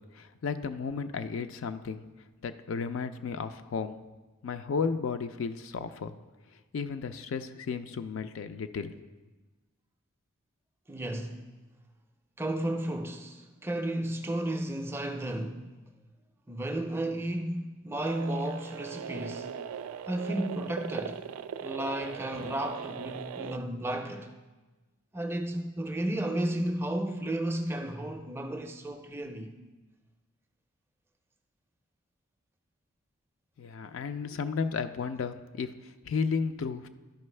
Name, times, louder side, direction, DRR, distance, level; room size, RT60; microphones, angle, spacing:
voice 1, 0.1-2.0 2.4-4.0 4.4-6.1 6.7-9.0 33.6-36.9, left 5 dB, 60° left, 0.4 m, -33 dB
voice 2, 10.9-11.5 12.4-15.7 16.5-19.5 20.1-21.2 21.6-24.3 25.1-29.5, right 1 dB, 10° right, 0.4 m, -33 dB
sound 1, 18.0-23.6, right 7 dB, 80° right, 0.3 m, -39 dB
12.0 x 5.3 x 3.2 m
head